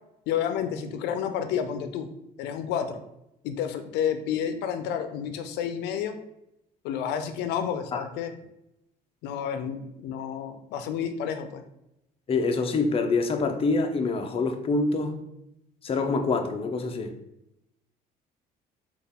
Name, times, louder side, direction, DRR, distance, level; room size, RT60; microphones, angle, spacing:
voice 1, 0.3-2.1 2.4-3.0 3.4-6.2 6.8-8.3 9.2-11.6, left 8 dB, 90° left, 8 dB, 0.5 m, -30 dB
voice 2, 12.3-15.2 15.8-17.1, left 3 dB, 35° left, 5 dB, 0.5 m, -26 dB
4.2 x 2.4 x 3.4 m, 0.84 s
cardioid pair, 110°, 17 cm